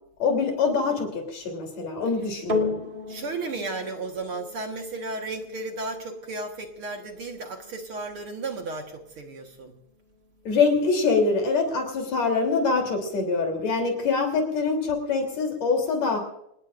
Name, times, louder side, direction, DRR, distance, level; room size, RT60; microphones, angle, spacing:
voice 1, 0.2-2.8 10.4-16.2, left 4 dB, 65° left, 3 dB, 4.5 m, -24 dB
sound 1, 2.5-11.1 11.8-11.9, left 3 dB, 30° right, 0.9 m, -36 dB
voice 2, 3.1-9.7, right 3 dB, 55° right, 3 dB, 2.1 m, -34 dB
27.0 x 19.0 x 2.5 m, 0.79 s
omnidirectional pair, 3.3 m